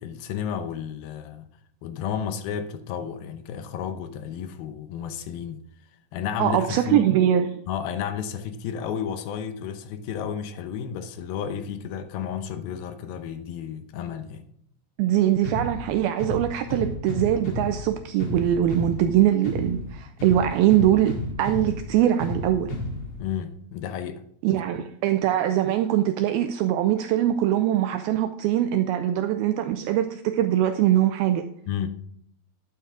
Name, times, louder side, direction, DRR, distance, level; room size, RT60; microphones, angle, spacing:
voice 1, 0.0-1.5 1.8-5.6 6.1-7.1 7.7-14.5 23.2-24.2 24.8-24.9 31.7-31.9, left 8 dB, 75° left, 2.3 m, -32 dB
voice 2, 6.4-7.5 15.0-22.7 24.4-31.5, right 11 dB, 85° right, 2.2 m, -22 dB
sound 1, 15.4-23.4, left 1 dB, 45° left, 2.2 m, -33 dB
12.0 x 9.0 x 3.7 m
omnidirectional pair, 4.9 m